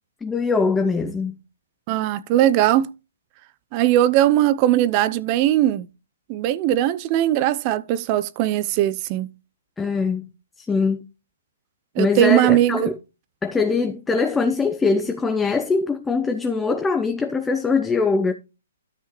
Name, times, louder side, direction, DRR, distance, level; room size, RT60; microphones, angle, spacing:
voice 1, 0.2-1.4 9.8-10.3 10.6-11.0 12.0-13.0 13.4-18.3, left 4 dB, 10° left, 0.7 m, -22 dB
voice 2, 1.9-2.9 3.7-5.9 6.3-9.3 12.0-12.9, right 13 dB, 35° right, 0.7 m, -19 dB
12.5 x 5.6 x 3.1 m
figure-of-eight pair, 125°, 0 cm